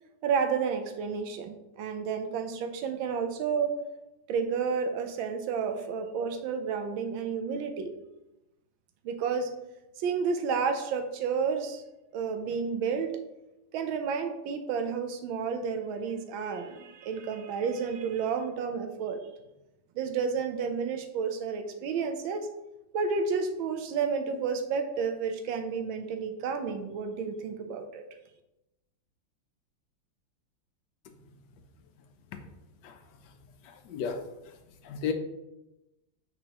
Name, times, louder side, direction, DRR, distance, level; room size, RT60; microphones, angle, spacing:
voice 1, 0.2-3.8 4.3-7.9 9.0-9.5 10.0-11.8 12.1-13.2 13.7-19.3 19.9-22.5 22.9-28.0, right 5 dB, 90° right, 7 dB, 1.5 m, -31 dB
voice 2, 32.8-33.3 33.6-34.5 34.8-35.1, left 6 dB, 70° left, 7 dB, 1.3 m, -35 dB
9.0 x 4.3 x 2.9 m, 0.94 s
omnidirectional pair, 2.1 m